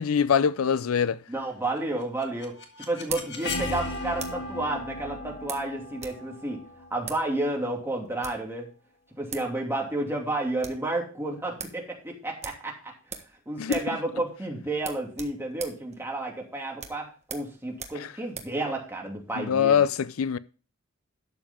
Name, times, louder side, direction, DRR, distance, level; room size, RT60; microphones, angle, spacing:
voice 1, 0.0-1.2 13.6-13.8 18.0-18.1 19.4-20.4, left 7 dB, 75° left, 0.5 m, -23 dB
voice 2, 1.3-2.5 2.9-6.6 6.9-8.7 9.2-12.9 13.5-19.8, right 2 dB, 10° right, 2.6 m, -31 dB
sound 1, 1.6-4.6 5.5-6.2 6.5-6.6 7.0-7.3 8.0-8.5 9.0-9.1 9.3-9.5 9.8-9.9 10.3-10.9 11.2-11.3 11.6-11.8 12.4-13.4 13.6-14.0 14.2-14.4 14.8-18.6, right 6 dB, 30° right, 1.4 m, -41 dB
sound 2, 2.0-7.9, left 2 dB, 55° left, 1.8 m, -36 dB
12.0 x 7.1 x 3.6 m
head